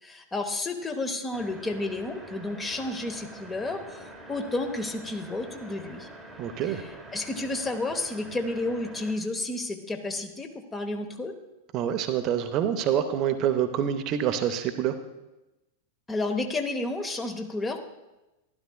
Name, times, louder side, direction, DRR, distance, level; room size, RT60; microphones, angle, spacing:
voice 1, 0.0-6.1 6.6-11.3 16.1-17.8, left 2 dB, 15° left, 6 dB, 0.9 m, -31 dB
sound 1, 1.3-9.1, right 1 dB, 5° right, 1.2 m, -45 dB
voice 2, 6.4-6.8 11.7-14.9, right 9 dB, 35° right, 8 dB, 0.5 m, -26 dB
12.0 x 11.5 x 2.2 m, 1.0 s
figure-of-eight pair, 90°, 0 cm